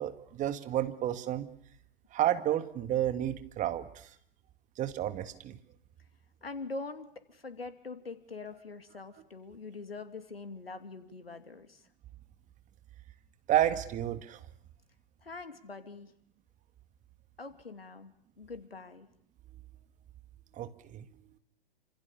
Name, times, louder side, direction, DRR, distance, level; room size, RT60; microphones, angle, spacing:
voice 1, 0.0-1.5 2.1-3.9 4.8-5.6 13.5-14.4 20.6-21.1, right 12 dB, 25° right, 11 dB, 1.8 m, -31 dB
voice 2, 6.4-11.8 15.2-16.1 17.4-19.1, left 3 dB, 90° left, 9 dB, 2.8 m, -44 dB
28.0 x 26.0 x 7.0 m, 0.67 s
figure-of-eight pair, 110°, 29 cm